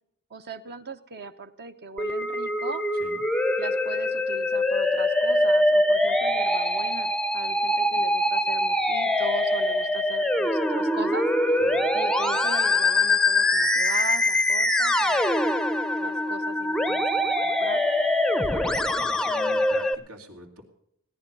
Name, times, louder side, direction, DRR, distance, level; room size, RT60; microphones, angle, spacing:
voice 1, 0.3-2.8 3.6-11.6 11.9-17.8, right 4 dB, 50° right, 9 dB, 1.0 m, -39 dB
Musical instrument, 2.0-19.9, left 1 dB, 5° left, 0.6 m, -23 dB
voice 2, 18.4-20.6, right 1 dB, 90° right, 2 dB, 3.0 m, -44 dB
17.5 x 10.5 x 5.5 m, 0.74 s
head